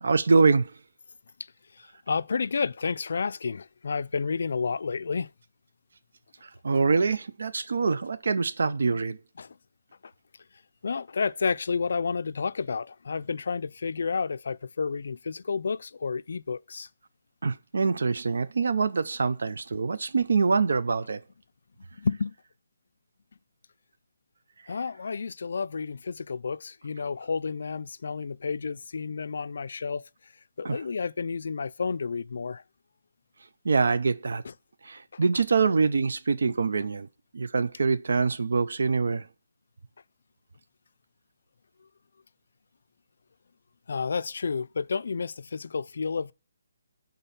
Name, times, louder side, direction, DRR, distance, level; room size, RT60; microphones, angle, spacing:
voice 1, 0.0-0.7 6.4-9.2 17.4-21.2 30.6-30.8 33.6-34.4 34.8-37.1 37.3-39.2, right 4 dB, 65° right, 0.6 m, -25 dB
voice 2, 2.1-5.3 9.4-9.5 10.8-16.9 22.0-22.3 24.7-30.0 30.6-32.6 36.5-36.6 43.9-46.3, left 5 dB, 55° left, 0.4 m, -30 dB
10.0 x 3.9 x 7.0 m
hypercardioid pair, 175°, 0 cm